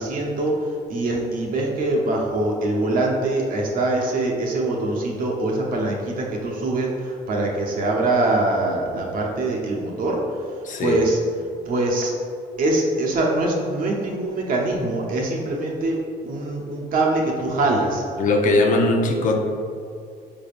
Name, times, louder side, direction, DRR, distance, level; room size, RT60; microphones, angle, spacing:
voice 1, 0.0-10.2 10.8-11.2 11.7-12.1 12.6-16.0 16.2-18.0, right 2 dB, 55° right, -1 dB, 0.8 m, -23 dB
voice 2, 10.6-11.0 18.2-19.4, left 2 dB, 50° left, 2 dB, 0.6 m, -19 dB
5.3 x 3.4 x 2.5 m, 2.3 s
cardioid pair, 110°, 17 cm